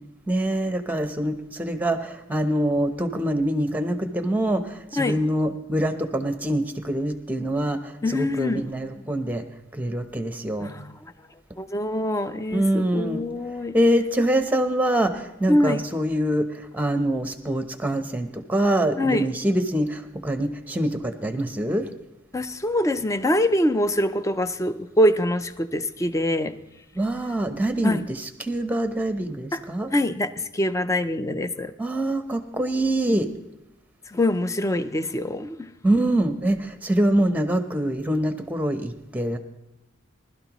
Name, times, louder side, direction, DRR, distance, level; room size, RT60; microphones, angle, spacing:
voice 1, 0.3-9.4 9.7-10.7 12.5-13.2 13.7-21.9 26.9-29.9 31.8-33.3 35.8-39.4, right 1 dB, 10° right, 8 dB, 0.9 m, -25 dB
voice 2, 8.0-8.6 10.6-11.0 11.6-13.8 15.5-15.8 19.0-19.3 22.3-26.5 27.8-28.0 29.5-29.6 29.9-31.7 34.1-35.7, left 1 dB, 15° left, 12 dB, 0.5 m, -24 dB
20.0 x 12.0 x 3.0 m, 0.94 s
head